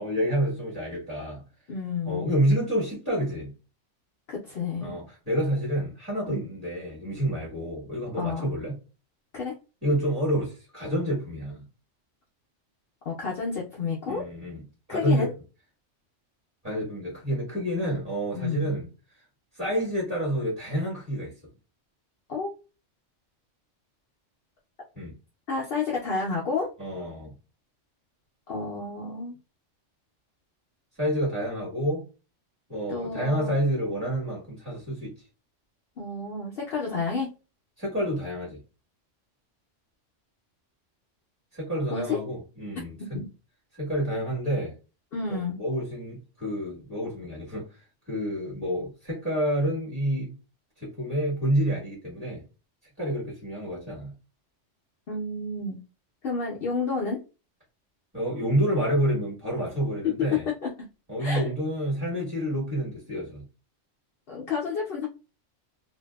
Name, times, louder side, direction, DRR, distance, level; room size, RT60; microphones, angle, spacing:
voice 1, 0.0-1.4 2.1-3.5 4.8-8.7 9.8-11.6 14.1-14.6 14.9-15.3 16.6-18.9 19.5-21.3 24.9-25.1 26.8-27.3 31.0-32.0 32.7-35.1 37.8-38.6 41.5-43.2 43.7-44.7 45.3-47.7 48.1-50.3 50.8-52.4 53.0-54.1 58.1-60.5 61.1-63.4, equal, 15° right, 1.4 m, -28 dB
voice 2, 1.7-2.4 4.3-4.9 6.3-6.4 8.2-8.5 9.3-9.5 13.1-14.2 14.9-15.3 18.3-18.7 22.3-22.5 25.5-26.7 28.5-29.4 32.9-33.5 36.0-37.3 41.9-42.2 43.1-43.3 45.1-45.5 55.1-55.8 56.2-57.2 60.0-60.1 60.6-60.7 61.2-61.5 64.3-65.1, left 4 dB, 60° left, 0.8 m, -30 dB
2.6 x 2.6 x 2.3 m
omnidirectional pair, 1.3 m